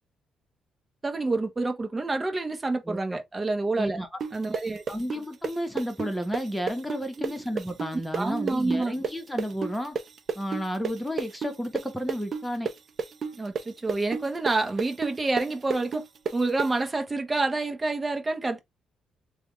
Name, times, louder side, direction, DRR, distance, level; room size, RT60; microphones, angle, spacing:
voice 1, 1.0-4.0 4.3-4.8 7.2-7.4 8.2-8.9 13.3-16.0 16.3-18.6, right 3 dB, 25° right, 0.9 m, -28 dB
voice 2, 3.8-4.1 4.9-10.0 10.3-12.7, equal, 5° left, 1.1 m, -32 dB
sound 1, 4.2-11.8 12.1-16.7, right 6 dB, 50° right, 0.6 m, -31 dB
3.4 x 2.4 x 3.2 m
cardioid pair, 90°, 0 cm